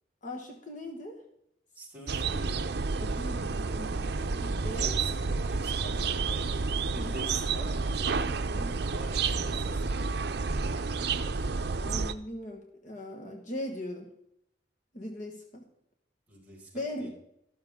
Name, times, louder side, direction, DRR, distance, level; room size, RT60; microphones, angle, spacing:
voice 1, 0.2-1.2 3.0-5.0 6.9-7.3 8.5-8.8 11.8-14.1 14.9-15.7 16.7-17.1, left 1 dB, 45° left, 2 dB, 1.5 m, -39 dB
voice 2, 1.7-2.6 4.7-5.1 5.4-6.5 6.9-8.3 8.9-10.1 16.3-17.1, equal, 10° right, -5 dB, 5.3 m, -46 dB
sound 1, 2.1-12.1, right 4 dB, 65° right, 0.6 m, -30 dB
13.5 x 12.5 x 3.7 m, 0.75 s
head